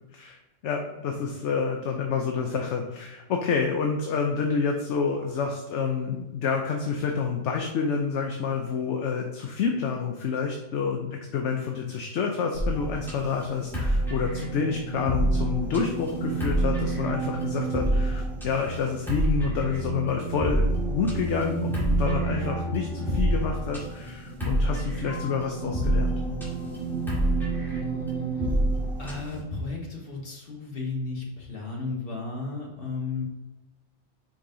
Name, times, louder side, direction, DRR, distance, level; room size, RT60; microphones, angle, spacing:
voice 1, 0.6-26.1, left 5 dB, 70° left, 2 dB, 1.0 m, -28 dB
sound 1, 12.5-29.4, right 2 dB, ahead, 1.9 m, -28 dB
voice 2, 29.0-33.2, left 3 dB, 45° left, -2 dB, 1.7 m, -34 dB
5.5 x 5.1 x 3.8 m, 1.0 s
omnidirectional pair, 1.3 m